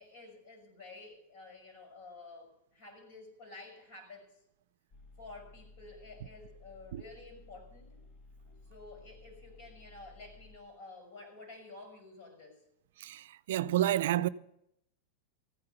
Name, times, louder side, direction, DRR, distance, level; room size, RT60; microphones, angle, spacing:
voice 1, 0.0-4.4 5.2-8.0 8.7-12.6, left 3 dB, 60° left, 6.1 m, -51 dB
sound 1, 4.9-10.6, left 2 dB, 40° left, 1.6 m, -56 dB
voice 2, 13.0-14.3, right 13 dB, 70° right, 0.5 m, -30 dB
15.0 x 9.8 x 6.8 m
supercardioid pair, 145°, 0 cm